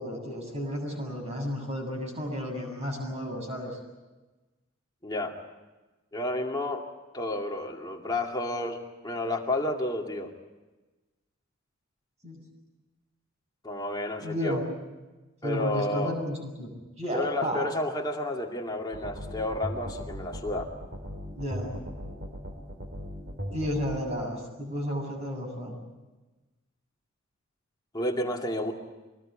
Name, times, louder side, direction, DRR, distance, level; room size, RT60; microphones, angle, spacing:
voice 1, 0.0-3.8 12.2-12.4 14.2-14.6 15.4-17.6 21.3-21.8 23.5-25.8, equal, 30° right, 2 dB, 7.4 m, -32 dB
voice 2, 5.0-5.3 6.1-6.8 7.1-10.3 13.6-14.6 15.4-16.2 17.1-20.7 27.9-28.7, left 1 dB, 20° left, 1 dB, 2.4 m, -31 dB
sound 1, 18.9-24.0, equal, 50° right, 4.6 m, -37 dB
25.0 x 20.0 x 8.8 m, 1.1 s
head